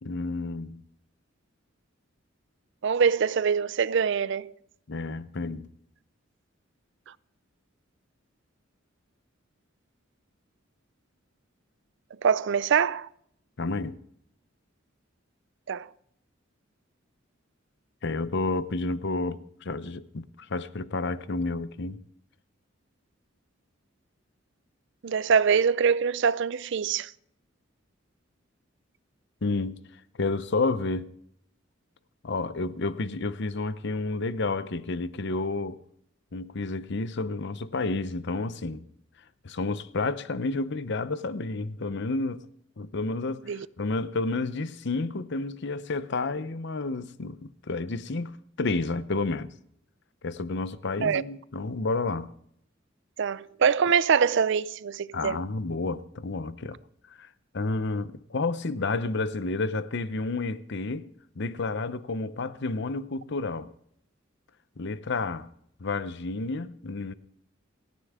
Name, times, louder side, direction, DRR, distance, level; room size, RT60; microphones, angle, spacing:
voice 1, 0.0-0.8 4.9-5.7 13.6-13.9 18.0-22.0 29.4-29.8 30.2-31.1 32.2-35.8 36.3-38.8 39.4-42.4 42.8-49.5 50.2-52.3 55.1-56.8 57.2-57.3 57.5-61.1 61.4-63.7 64.8-65.5 65.8-67.1, left 3 dB, 60° left, 0.8 m, -30 dB
voice 2, 2.8-4.5 12.2-13.1 15.7-15.9 25.0-27.1 43.5-43.7 51.0-51.2 53.2-55.4, right 6 dB, 65° right, 0.5 m, -24 dB
28.5 x 9.9 x 3.6 m
head